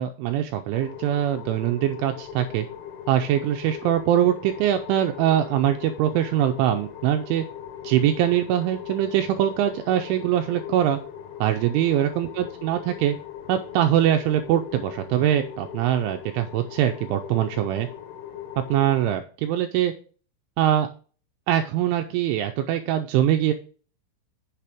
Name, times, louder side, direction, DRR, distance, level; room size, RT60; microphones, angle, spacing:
voice 1, 0.0-2.7 3.1-7.4 7.8-11.0 11.4-13.2 13.5-17.9 18.7-19.9 20.6-20.9 21.5-23.5, right 11 dB, 80° right, 6 dB, 2.8 m, -23 dB
sound 1, 0.7-19.2, left 9 dB, 75° left, 3.4 m, -39 dB
8.5 x 8.3 x 3.5 m, 0.39 s
omnidirectional pair, 5.9 m